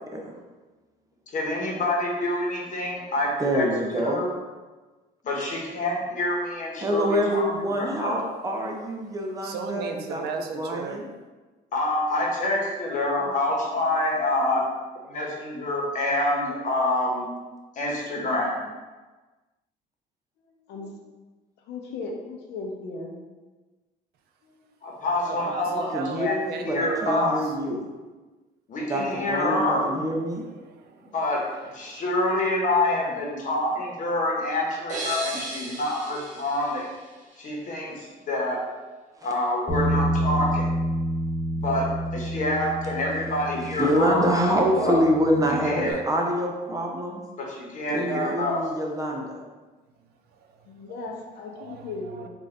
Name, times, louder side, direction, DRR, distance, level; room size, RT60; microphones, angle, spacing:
voice 1, 1.3-4.3 5.2-8.2 11.7-14.7 14.9-17.3 17.7-18.6 24.8-26.4 26.6-27.4 28.7-29.9 31.1-31.4 31.7-36.9 37.4-38.6 39.2-40.7 41.6-45.0 45.4-45.9 47.4-48.6, left 1 dB, 50° left, -2 dB, 1.1 m, -27 dB
voice 2, 3.4-4.2 6.8-10.2 10.6-11.0 25.7-27.8 28.9-30.4 39.2-39.3 43.8-47.2 47.9-49.4, equal, 20° right, 0 dB, 0.6 m, -26 dB
voice 3, 9.4-11.0 25.3-27.3 29.6-31.1 31.5-32.1 45.8-46.0 47.9-48.4 50.4-50.6 50.9-51.2 51.6-51.8, right 5 dB, 70° right, 4 dB, 0.5 m, -35 dB
voice 4, 20.5-20.9 21.7-23.2 24.4-24.6 25.2-25.7 29.3-29.9 50.7-52.3, left 3 dB, 80° left, 0 dB, 0.7 m, -37 dB
sound 1, 34.9-37.7, right 2 dB, 45° right, 0.8 m, -36 dB
Bass guitar, 39.7-45.9, right 1 dB, 25° left, 1.0 m, -29 dB
3.7 x 2.6 x 3.3 m, 1.3 s
cardioid pair, 110°, 17 cm